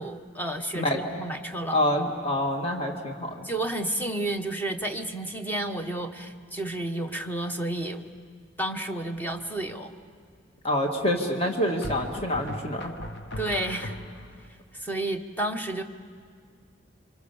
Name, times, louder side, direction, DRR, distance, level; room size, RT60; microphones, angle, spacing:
voice 1, 0.0-1.8 3.4-8.1 8.6-9.9 13.4-14.0 14.7-15.8, right 1 dB, 10° left, 4 dB, 1.1 m, -31 dB
voice 2, 1.7-3.5 10.6-12.9, left 1 dB, 30° left, 2 dB, 1.8 m, -26 dB
sound 1, 9.1-9.6 11.8-14.5, left 1 dB, 65° left, 1.2 m, -39 dB
29.0 x 25.0 x 7.0 m, 2.2 s
head